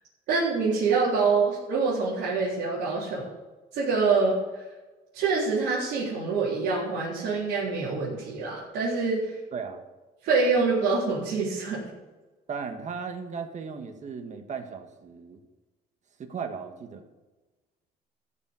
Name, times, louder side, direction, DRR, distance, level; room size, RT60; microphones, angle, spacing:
voice 1, 0.3-3.3 3.7-4.6 5.1-9.4 10.2-11.9, right 4 dB, 80° right, -8 dB, 3.8 m, -25 dB
voice 2, 9.5-9.8 12.5-15.4 16.2-17.1, right 6 dB, 45° right, 6 dB, 1.6 m, -36 dB
14.5 x 6.1 x 7.2 m, 1.2 s
cardioid pair, 110°, 17 cm